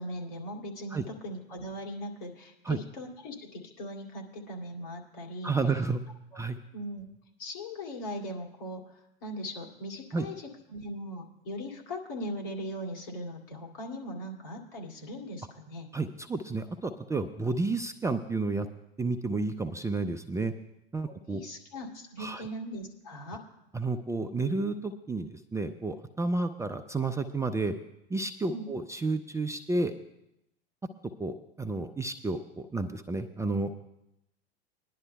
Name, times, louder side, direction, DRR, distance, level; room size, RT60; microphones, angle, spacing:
voice 1, 0.0-5.5 6.7-7.1 7.4-8.9 9.2-15.9 21.1-23.4 28.5-28.7, equal, 60° left, 0 dB, 2.6 m, -39 dB
voice 2, 5.4-6.0 6.3-6.6 10.1-10.3 15.9-18.7 19.0-20.5 20.9-21.4 22.2-22.4 23.7-27.7 28.1-29.9 31.2-33.7, right 3 dB, 10° right, 6 dB, 0.5 m, -31 dB
21.5 x 11.0 x 2.3 m, 0.85 s
hypercardioid pair, 90°, 31 cm